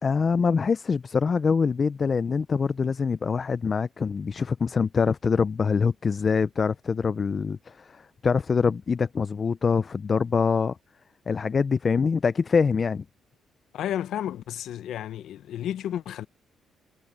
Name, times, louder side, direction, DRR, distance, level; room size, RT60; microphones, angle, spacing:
voice 1, 0.0-10.8 11.3-13.0, left 5 dB, 40° left, 0.4 m, -24 dB
voice 2, 13.7-16.3, left 11 dB, 75° left, 0.7 m, -32 dB
cardioid pair, 90°, 0 cm